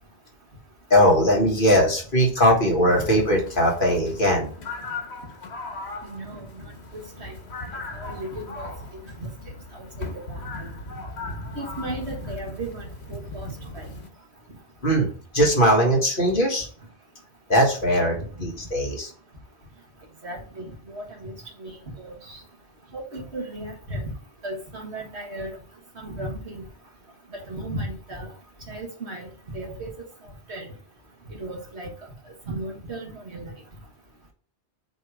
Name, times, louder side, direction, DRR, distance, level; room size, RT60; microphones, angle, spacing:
voice 1, 0.9-4.5 14.8-16.7 17.5-18.2 18.4-19.1, equal, 55° left, -1 dB, 1.9 m, -20 dB
sound 1, 2.9-14.1, left 2 dB, 80° left, 1.5 m, -38 dB
voice 2, 6.0-6.6 7.2-7.3 8.0-8.7 9.2-9.3 9.7-10.4 11.6-12.8 13.1-13.5 13.7-13.9 18.2-18.3 20.2-21.3 21.6-22.4 22.9-24.0 24.4-25.6 26.0-26.6 27.5-28.3 28.7-29.3 29.5-29.9 30.5-30.7 31.3-31.9 32.5-33.5, right 1 dB, 85° right, -1 dB, 2.0 m, -35 dB
7.5 x 3.2 x 4.9 m, 0.44 s
omnidirectional pair, 1.1 m